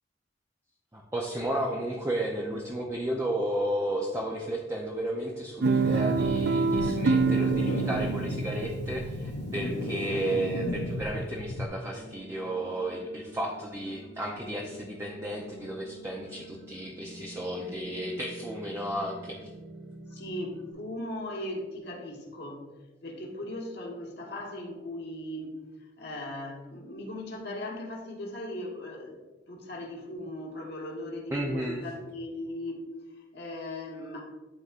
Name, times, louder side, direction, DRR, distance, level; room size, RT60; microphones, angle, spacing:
voice 1, 0.9-19.5 31.3-31.8, right 1 dB, 15° right, -1 dB, 0.6 m, -33 dB
Guitar, 5.6-10.0, right 4 dB, 65° right, 0.3 m, -27 dB
sound 1, 5.8-11.7, left 1 dB, 85° left, 0.6 m, -34 dB
voice 2, 10.1-10.4 20.1-22.6 23.0-29.2 29.5-32.8 33.1-34.2, left 1 dB, 60° left, -1 dB, 1.4 m, -38 dB
sound 2, 11.9-20.7, equal, 80° right, 1.3 m, -48 dB
11.5 x 4.1 x 2.5 m, 1.3 s
head